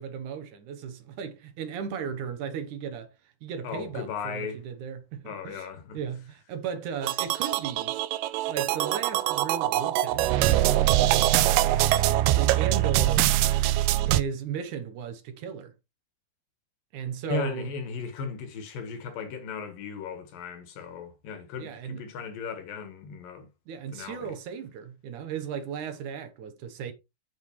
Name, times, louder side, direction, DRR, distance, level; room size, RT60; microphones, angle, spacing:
voice 1, 0.0-5.7 5.9-8.0 8.5-11.7 12.0-13.3 14.0-15.7 16.9-17.7 21.6-22.0 23.7-26.9, right 7 dB, 65° right, 2.2 m, -36 dB
voice 2, 3.6-4.6 5.3-6.0 17.3-23.5 23.9-24.4, left 6 dB, 65° left, 3.3 m, -36 dB
sound 1, 7.0-14.2, right 14 dB, 80° right, 2.0 m, -23 dB
8.6 x 8.1 x 3.2 m
omnidirectional pair, 4.4 m